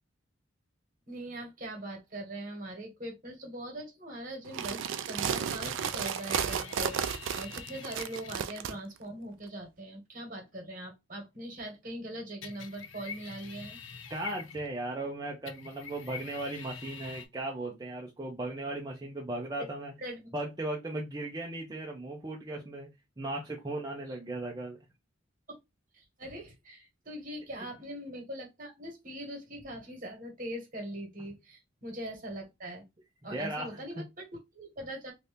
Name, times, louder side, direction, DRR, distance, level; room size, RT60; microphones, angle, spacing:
voice 1, 1.1-13.8 20.0-20.3 25.5-25.6 25.9-32.8 33.2-35.1, right 1 dB, 45° right, 1.4 m, -41 dB
sound 1, 4.5-8.7, right 8 dB, 80° right, 0.4 m, -33 dB
sound 2, 5.7-8.5 12.4-14.9 15.5-17.3, left 6 dB, 85° left, 0.6 m, -45 dB
voice 2, 14.1-19.9 20.3-22.9 23.2-24.8 33.3-34.0, right 2 dB, 20° right, 0.6 m, -37 dB
2.7 x 2.7 x 3.4 m
head